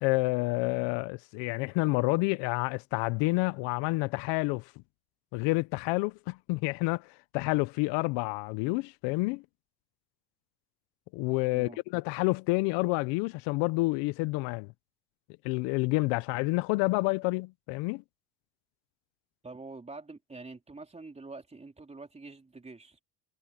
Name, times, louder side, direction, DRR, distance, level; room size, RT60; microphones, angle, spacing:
voice 1, 0.0-4.7 5.3-9.4 11.1-14.7 15.4-18.0, left 24 dB, 80° left, 0.7 m, -29 dB
voice 2, 19.4-23.0, right 3 dB, 15° right, 3.9 m, -46 dB
cardioid pair, 115°, 42 cm